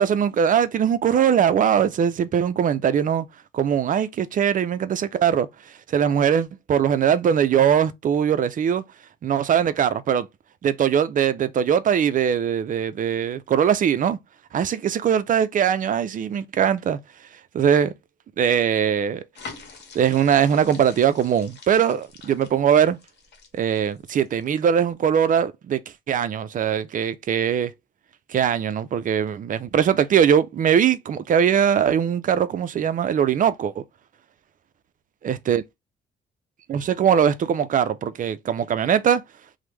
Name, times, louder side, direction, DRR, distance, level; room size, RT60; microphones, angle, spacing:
voice 1, 0.0-3.3 3.5-5.5 5.9-8.8 9.2-10.3 10.6-14.2 14.5-17.0 17.5-17.9 18.4-19.2 19.9-23.0 23.5-25.8 26.1-27.7 28.3-33.8 35.2-35.6 36.7-39.2, right 8 dB, 40° right, 0.4 m, -21 dB
sound 1, 19.4-24.7 25.1-25.3, left 4 dB, 60° left, 0.9 m, -45 dB
2.9 x 2.1 x 3.3 m
cardioid pair, 90°, 20 cm